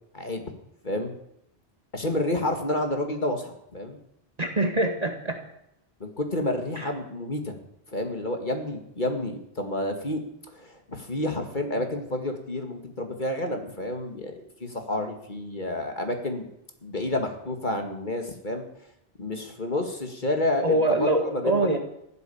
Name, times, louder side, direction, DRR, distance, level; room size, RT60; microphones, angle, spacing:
voice 1, 0.1-0.4 0.8-1.1 1.9-4.0 6.0-7.5 7.9-10.2 10.5-14.3 14.6-16.5 16.8-18.6 19.2-21.8, left 1 dB, 40° left, 4 dB, 2.2 m, -29 dB
voice 2, 4.4-5.4 20.6-21.8, right 1 dB, 35° right, 4 dB, 2.1 m, -24 dB
15.0 x 12.0 x 7.1 m, 0.79 s
omnidirectional pair, 1.2 m